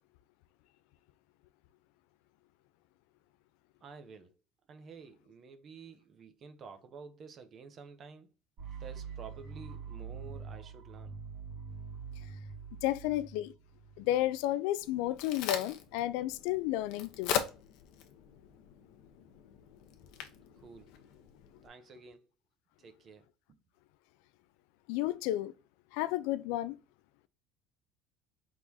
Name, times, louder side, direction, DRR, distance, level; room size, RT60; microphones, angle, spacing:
voice 1, 3.8-4.3 4.7-8.3 8.8-11.2 20.6-20.9 21.6-22.3 22.8-23.6, right 5 dB, 30° right, 0.6 m, -51 dB
sound 1, 8.6-14.5, right 6 dB, 50° right, 1.7 m, -45 dB
voice 2, 12.8-13.5 14.0-17.4 24.9-25.5 25.9-26.8, left 14 dB, 80° left, 0.3 m, -32 dB
Crack, 14.8-21.7, left 9 dB, 65° left, 0.7 m, -40 dB
4.6 x 3.7 x 2.6 m
cardioid pair, 165°, 0 cm